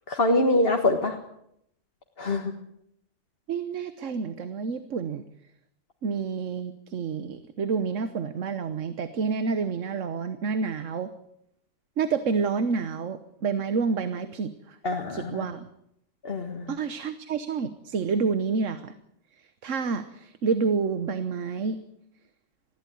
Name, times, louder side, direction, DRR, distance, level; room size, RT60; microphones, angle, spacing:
voice 1, 0.1-1.2 2.2-2.5 14.8-15.4 16.2-16.7, left 2 dB, 50° left, 3 dB, 1.9 m, -24 dB
voice 2, 3.5-5.2 6.0-11.1 12.0-14.8 15.1-15.7 16.7-18.9 19.4-21.8, right 5 dB, 90° right, 11 dB, 1.4 m, -29 dB
20.5 x 15.5 x 9.4 m, 0.76 s
omnidirectional pair, 1.3 m